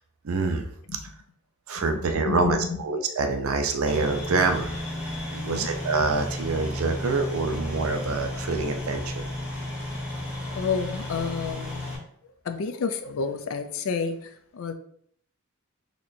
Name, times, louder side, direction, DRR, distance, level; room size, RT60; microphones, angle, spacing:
voice 1, 0.2-0.7 1.7-4.7 5.4-9.3, right 3 dB, 80° right, 6 dB, 0.5 m, -26 dB
voice 2, 1.8-2.8 5.3-5.7 10.5-11.8 12.4-14.7, left 5 dB, 75° left, 8 dB, 0.4 m, -30 dB
sound 1, 3.9-12.0, left 1 dB, 5° right, 1.3 m, -33 dB
4.2 x 3.0 x 2.6 m, 0.64 s
head